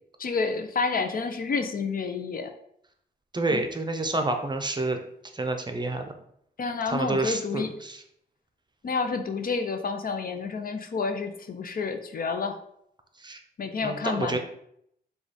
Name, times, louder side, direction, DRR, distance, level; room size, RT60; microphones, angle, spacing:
voice 1, 0.2-2.5 3.5-3.6 6.6-7.7 8.8-12.6 13.6-14.4, left 4 dB, 55° left, 7 dB, 0.5 m, -29 dB
voice 2, 3.3-5.0 5.3-6.1 6.9-8.0 13.2-13.4 13.8-14.4, right 2 dB, 25° right, 5 dB, 0.6 m, -28 dB
4.8 x 2.4 x 4.0 m, 0.72 s
cardioid pair, 70°, 17 cm